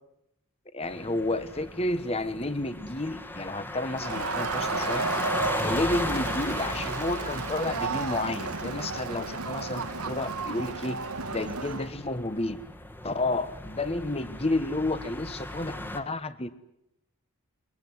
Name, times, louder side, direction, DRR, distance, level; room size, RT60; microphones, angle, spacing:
voice 1, 0.7-5.1 5.5-11.0 11.3-12.6 13.0-16.7, left 2 dB, 25° left, 13 dB, 1.4 m, -31 dB
sound 1, 0.8-16.0, left 1 dB, 10° left, 1.8 m, -36 dB
Crowd, 4.0-11.9, right 4 dB, 85° right, 1.6 m, -33 dB
23.0 x 22.5 x 9.7 m, 0.83 s
head